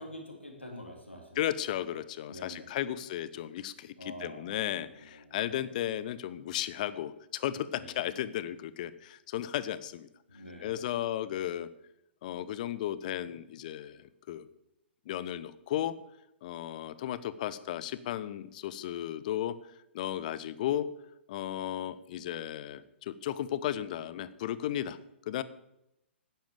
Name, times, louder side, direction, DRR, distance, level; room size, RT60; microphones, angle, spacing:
voice 1, 0.0-1.5 2.3-2.8 4.0-5.6 7.7-8.0 10.3-10.8, equal, 85° left, 1 dB, 3.3 m, -47 dB
voice 2, 1.4-10.1 10.6-11.7 12.2-14.5 15.1-15.9 16.4-19.6 19.9-20.9 21.3-25.0 25.3-25.4, left 12 dB, 40° left, 16 dB, 0.7 m, -34 dB
10.5 x 10.0 x 6.8 m, 0.84 s
figure-of-eight pair, 115°, 6 cm